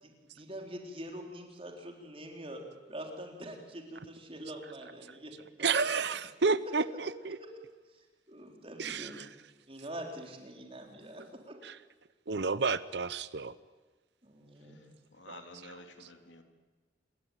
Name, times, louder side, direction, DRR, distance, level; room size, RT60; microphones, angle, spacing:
voice 1, 0.0-2.6 2.9-6.0 6.7-6.8 7.3-7.5 7.9-9.2 9.7-11.6 14.2-14.8, right 1 dB, 30° right, 2 dB, 4.2 m, -45 dB
voice 2, 5.6-7.4 8.8-9.3 11.6-11.7 12.3-13.5 15.3-15.4 16.0-16.1, right 4 dB, 65° right, 16 dB, 0.8 m, -31 dB
voice 3, 15.1-16.4, left 2 dB, 80° left, 5 dB, 3.3 m, -51 dB
27.5 x 21.0 x 9.3 m, 1.3 s
head